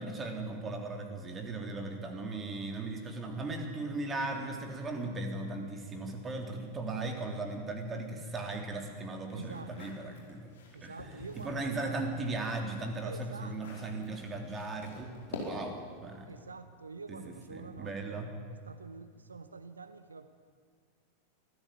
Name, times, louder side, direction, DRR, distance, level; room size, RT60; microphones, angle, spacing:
voice 1, 0.0-10.5 10.8-16.3 17.1-17.2 17.5-18.3, right 2 dB, 20° right, 4 dB, 3.6 m, -37 dB
voice 2, 9.3-10.2 10.7-12.1 13.0-13.6 16.2-20.3, right 4 dB, 75° right, 11 dB, 0.9 m, -47 dB
sound 1, 9.4-11.6 12.1-15.9, left 3 dB, 60° left, 4.9 m, -47 dB
25.0 x 15.0 x 9.3 m, 2.2 s
figure-of-eight pair, 90°, 0 cm